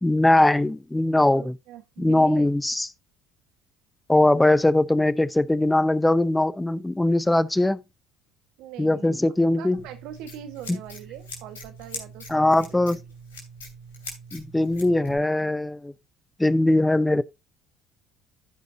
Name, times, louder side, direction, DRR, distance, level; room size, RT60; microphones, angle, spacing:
voice 1, 0.0-1.5 2.0-2.9 4.1-7.8 8.8-9.8 10.7-10.8 12.3-13.0 14.3-15.9 16.4-17.2, left 1 dB, 10° left, 0.7 m, -21 dB
voice 2, 1.3-2.5 8.6-12.8 15.1-15.5, right 10 dB, 70° right, 1.4 m, -42 dB
Scissors, 9.8-15.2, left 1 dB, 90° left, 3.0 m, -42 dB
15.0 x 5.3 x 2.7 m
hypercardioid pair, 65°, 0 cm